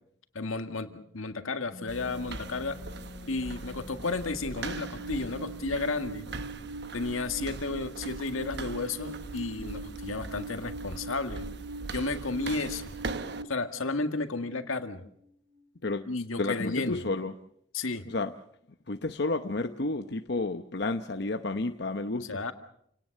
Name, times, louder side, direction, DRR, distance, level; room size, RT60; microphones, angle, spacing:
voice 1, 0.3-2.8 3.3-6.3 6.9-11.5 11.9-12.8 13.5-15.0 16.1-17.0 17.7-18.0 22.2-22.5, left 3 dB, 85° left, 7 dB, 2.0 m, -33 dB
Wind instrument woodwind instrument, 1.7-6.1, left 3 dB, 30° left, 1.2 m, -48 dB
sound 1, 1.9-13.4, right 3 dB, 55° right, 1.1 m, -41 dB
Alarm, 4.5-13.4, right 3 dB, 80° right, 2.5 m, -42 dB
voice 2, 16.4-17.3 18.1-18.3 18.9-22.4, left 2 dB, 55° left, 7 dB, 0.9 m, -31 dB
29.0 x 18.0 x 6.7 m, 0.70 s
head